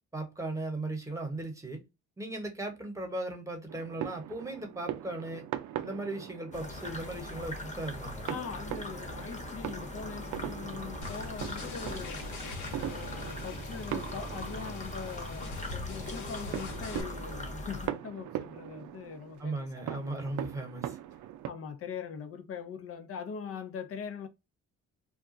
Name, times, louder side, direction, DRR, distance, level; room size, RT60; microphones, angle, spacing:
voice 1, 0.1-1.8 2.2-5.4 5.8-8.4 19.4-21.0, right 2 dB, 10° right, 1.1 m, -37 dB
sound 1, 3.7-21.5, right 12 dB, 75° right, 0.5 m, -41 dB
sound 2, 6.5-17.9, left 1 dB, 25° left, 1.0 m, -41 dB
voice 2, 8.3-12.3 12.8-20.0 21.5-24.3, left 6 dB, 50° left, 0.6 m, -42 dB
sound 3, 11.0-17.0, left 3 dB, 80° left, 1.0 m, -43 dB
2.4 x 2.2 x 3.7 m
cardioid pair, 90°, 30 cm